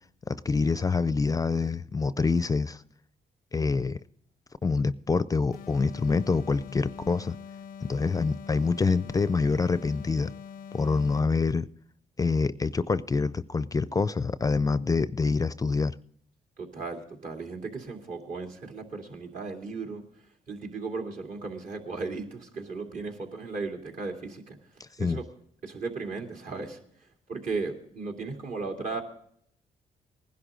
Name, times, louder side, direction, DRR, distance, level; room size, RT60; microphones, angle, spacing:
voice 1, 0.3-2.8 3.5-4.0 4.6-7.4 7.8-10.3 10.7-11.7 12.2-15.9 24.8-25.2, left 4 dB, 25° left, 0.4 m, -26 dB
sound 1, 5.5-11.4, left 7 dB, 90° left, 0.5 m, -44 dB
voice 2, 16.6-20.0 20.5-25.2 25.6-29.0, right 4 dB, 65° right, 2.7 m, -36 dB
19.0 x 11.0 x 3.8 m
cardioid pair, 90°, 15 cm